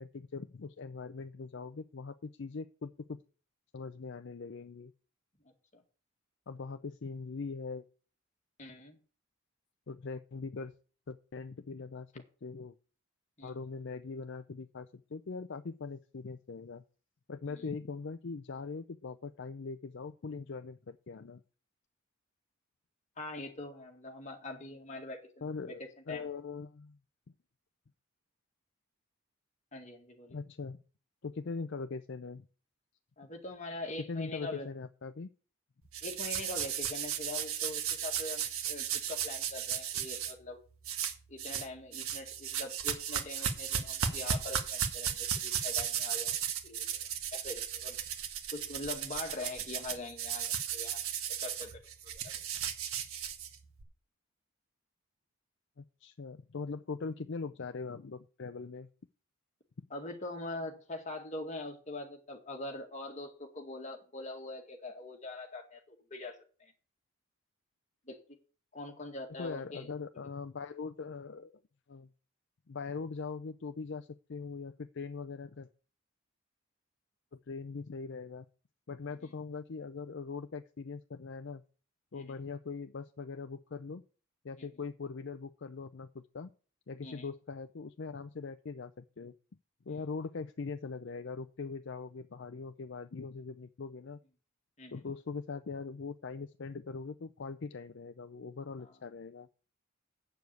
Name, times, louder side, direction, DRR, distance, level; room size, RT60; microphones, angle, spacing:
voice 1, 0.0-3.2 3.7-4.9 6.5-7.8 9.9-10.7 11.1-12.8 13.4-16.8 17.3-21.4 25.4-27.0 30.3-30.8 31.2-32.5 34.1-35.3 55.8-58.9 69.4-71.6 71.9-72.1 72.7-75.7 77.3-78.4 78.9-81.6 82.1-84.0 84.4-86.5 86.9-89.4 89.9-94.2 94.9-99.5, left 4 dB, 55° left, 9 dB, 0.5 m, -41 dB
voice 2, 8.6-9.0 13.4-13.5 17.5-17.6 23.2-26.3 29.7-30.4 33.2-34.7 36.0-40.6 41.3-46.4 46.6-46.9 47.3-48.0 48.5-51.0 51.4-51.8 52.1-52.4 59.9-66.7 68.1-68.2 68.7-69.9 82.1-82.4 84.6-84.7 87.0-87.3 94.8-95.0 98.8-98.9, left 2 dB, 35° left, 2 dB, 2.0 m, -43 dB
sound 1, 35.9-40.3 40.8-41.7 41.9-53.8, right 8 dB, 85° right, 1.4 m, -35 dB
7.8 x 7.0 x 8.3 m, 0.39 s
head